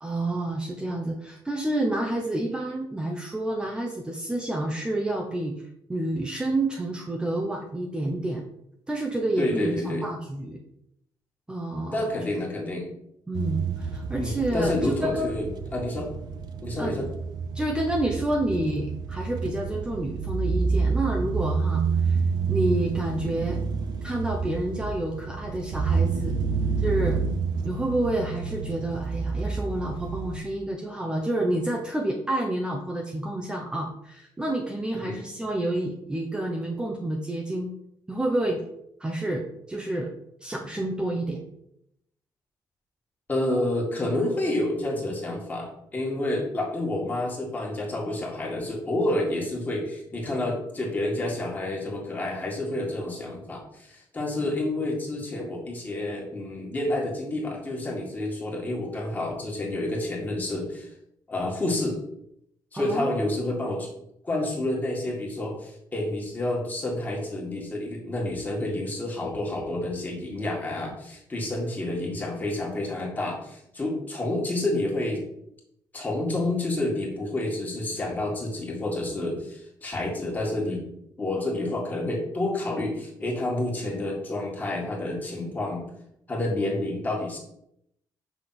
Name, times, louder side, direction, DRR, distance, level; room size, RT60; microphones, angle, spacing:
voice 1, 0.0-5.6 5.9-8.4 8.9-10.6 11.5-12.0 13.3-15.3 16.8-17.0 17.5-22.2 22.5-23.6 24.0-26.4 26.8-27.2 27.6-37.7 38.1-38.6 39.0-40.1 40.4-41.4 62.7-63.1, right 1 dB, 10° right, 0 dB, 0.7 m, -29 dB
voice 2, 9.4-10.0 11.9-12.9 14.2-16.1 16.6-17.1 34.9-35.2 43.3-60.9 61.3-62.0 62.7-63.9 64.2-75.2 75.9-80.9 81.2-85.8 86.3-87.4, left 1 dB, 20° left, -2 dB, 1.9 m, -29 dB
sound 1, 13.3-30.4, right 5 dB, 60° right, 0.6 m, -29 dB
6.0 x 3.4 x 5.8 m, 0.77 s
cardioid pair, 140°, 8 cm